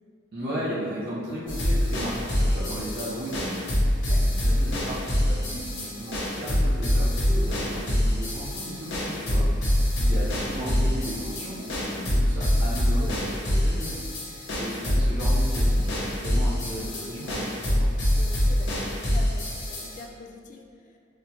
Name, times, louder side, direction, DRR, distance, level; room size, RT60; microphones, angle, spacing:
voice 1, 0.3-17.9, equal, 55° right, -8 dB, 0.6 m, -35 dB
sound 1, 1.5-20.0, equal, 65° left, 0.8 m, -25 dB
voice 2, 10.0-10.4 18.2-21.0, left 2 dB, 45° left, 1 dB, 0.3 m, -44 dB
4.0 x 2.1 x 2.7 m, 2.2 s
head